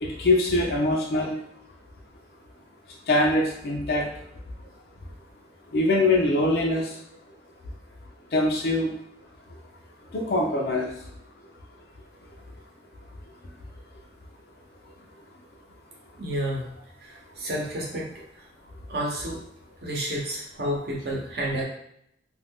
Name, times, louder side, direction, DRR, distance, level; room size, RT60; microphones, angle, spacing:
voice 1, 0.0-1.4 3.1-4.1 5.7-6.9 8.3-8.9 10.1-10.9, left 2 dB, 60° left, -1 dB, 0.5 m, -23 dB
voice 2, 16.2-16.7 17.0-18.1 18.3-18.5 18.9-19.4 19.8-21.6, right 1 dB, 60° right, -3 dB, 0.8 m, -30 dB
2.5 x 2.2 x 3.5 m, 0.71 s
head